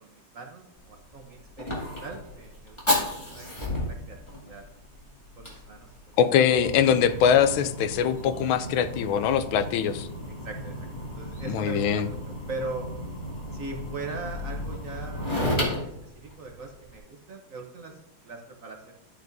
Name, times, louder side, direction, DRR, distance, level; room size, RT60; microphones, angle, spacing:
voice 1, 0.0-3.5 3.8-4.6 5.4-6.2 9.7-9.8 10.3-12.2 12.5-12.9 13.5-18.9, right 3 dB, 55° right, 2 dB, 1.0 m, -41 dB
Fire, 0.8-17.0, left 1 dB, 15° left, 2.2 m, -34 dB
voice 2, 6.2-10.1 11.5-12.1, left 8 dB, 85° left, 12 dB, 1.4 m, -22 dB
12.0 x 8.5 x 2.6 m, 0.81 s
omnidirectional pair, 2.2 m